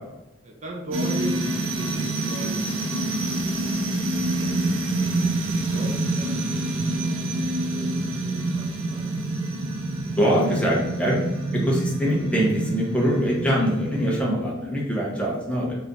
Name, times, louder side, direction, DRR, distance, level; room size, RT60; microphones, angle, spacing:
voice 1, 0.4-2.9 3.3-3.8 4.1-9.4, right 1 dB, 35° right, -1 dB, 0.6 m, -39 dB
sound 1, 0.9-14.2, right 2 dB, 80° right, 0.7 m, -27 dB
voice 2, 10.2-11.2 11.5-15.8, equal, 5° left, -4 dB, 0.9 m, -23 dB
4.0 x 2.7 x 3.5 m, 0.93 s
head